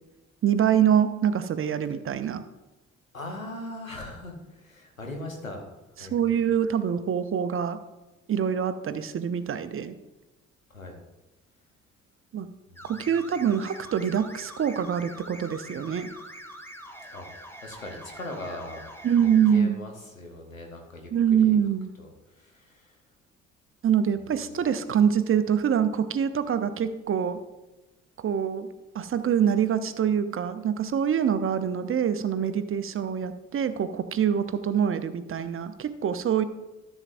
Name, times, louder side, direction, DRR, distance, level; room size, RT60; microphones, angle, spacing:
voice 1, 0.4-2.4 6.1-7.8 8.3-10.0 12.3-12.5 12.8-16.1 19.0-19.8 21.1-21.9 23.8-27.4 28.2-28.7 28.9-36.4, right 8 dB, 35° right, 11 dB, 0.7 m, -25 dB
voice 2, 3.1-5.6 5.9-6.6 10.7-11.0 12.7-13.1 17.1-17.3 17.6-18.9 19.2-21.1 21.4-21.5 22.0-23.0, left 1 dB, 90° left, 2 dB, 1.0 m, -40 dB
sound 1, 12.8-19.6, equal, 5° left, 1.3 m, -44 dB
14.0 x 7.2 x 2.5 m, 1.1 s
figure-of-eight pair, 40°, 39 cm